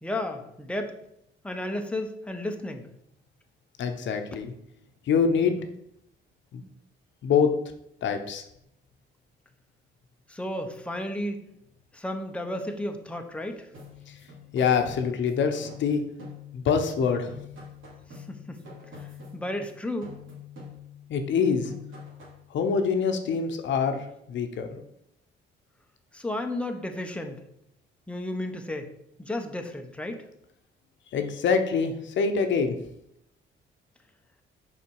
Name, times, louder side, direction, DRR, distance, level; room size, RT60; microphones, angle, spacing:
voice 1, 0.0-1.0 1.4-2.8 10.3-11.4 11.9-13.7 18.1-18.6 18.9-20.1 26.1-27.5 28.1-28.9 29.2-30.2, left 1 dB, 5° left, 4 dB, 0.9 m, -33 dB
voice 2, 3.8-4.5 5.1-5.6 6.5-6.6 7.2-7.5 8.0-8.4 14.5-16.0 16.5-17.3 21.1-21.7 22.5-24.8 31.1-32.7, left 6 dB, 70° left, 6 dB, 0.9 m, -25 dB
sound 1, 13.7-16.8 17.0-19.7 20.0-21.1 21.4-22.5, left 5 dB, 75° right, 2.7 m, -45 dB
5.8 x 5.0 x 4.7 m, 0.78 s
cardioid pair, 90°, 20 cm